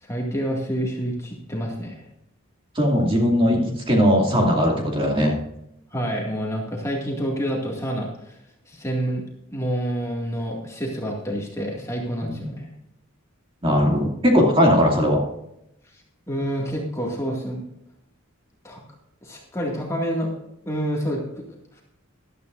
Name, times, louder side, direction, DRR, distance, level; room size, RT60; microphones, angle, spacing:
voice 1, 0.0-2.0 5.9-8.4 8.7-9.2 9.5-12.7 16.3-17.6 18.6-18.8 19.2-20.3 20.7-21.4, equal, 15° left, -2 dB, 2.1 m, -28 dB
voice 2, 2.7-5.4 12.2-12.4 13.6-15.2, equal, 25° right, -1 dB, 2.4 m, -19 dB
14.0 x 12.0 x 2.6 m, 0.80 s
head